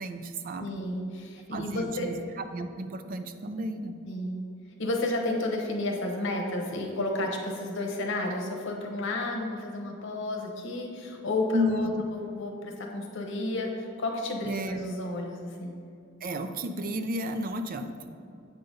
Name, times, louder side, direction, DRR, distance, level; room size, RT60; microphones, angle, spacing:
voice 1, 0.0-0.7 1.5-4.0 11.5-12.0 14.4-14.8 16.2-18.2, equal, 45° right, 8 dB, 0.4 m, -32 dB
voice 2, 0.6-2.1 4.0-4.4 4.8-15.7, left 2 dB, 60° left, 1 dB, 1.0 m, -32 dB
8.0 x 3.9 x 5.3 m, 2.5 s
head